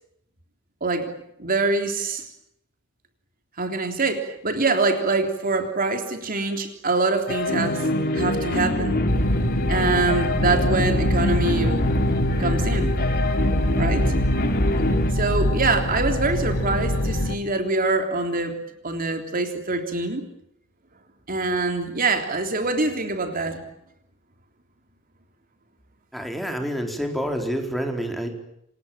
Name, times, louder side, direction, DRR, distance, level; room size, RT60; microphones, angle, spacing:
voice 1, 0.8-1.1 1.4-2.2 3.6-7.8 8.1-9.0 9.7-11.9 12.4-13.0 13.8-14.1 15.1-18.6 18.8-20.3 21.3-23.6, right 3 dB, 45° right, 5 dB, 3.5 m, -24 dB
sound 1, 7.3-15.1, left 1 dB, 50° left, 3.2 m, -25 dB
sound 2, 9.1-17.4, left 1 dB, 90° left, 2.6 m, -24 dB
voice 2, 26.1-28.3, equal, ahead, 3 dB, 4.5 m, -28 dB
29.0 x 26.0 x 7.5 m, 0.78 s
head